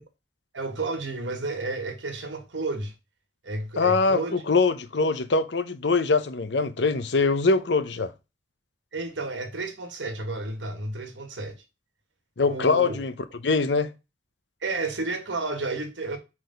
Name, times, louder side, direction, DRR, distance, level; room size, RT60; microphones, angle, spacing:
voice 1, 0.5-2.9 3.4-4.4 8.9-11.6 12.4-13.0 14.6-16.2, right 3 dB, 80° right, 1.4 m, -31 dB
voice 2, 3.8-8.1 12.4-13.1 13.4-13.9, left 4 dB, 70° left, 0.7 m, -23 dB
4.9 x 4.1 x 5.1 m
head